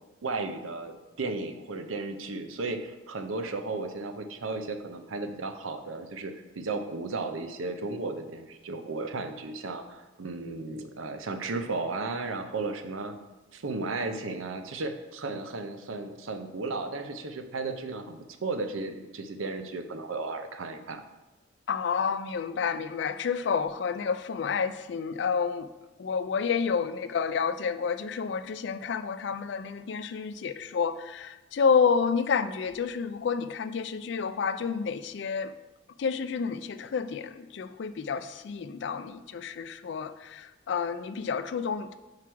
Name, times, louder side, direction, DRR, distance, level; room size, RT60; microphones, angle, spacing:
voice 1, 0.2-13.1 13.5-21.0, right 3 dB, 90° right, 7 dB, 0.6 m, -34 dB
voice 2, 21.7-25.7 26.0-35.5 36.0-42.0, left 6 dB, 60° left, 12 dB, 0.3 m, -29 dB
4.8 x 4.6 x 6.0 m, 1.1 s
head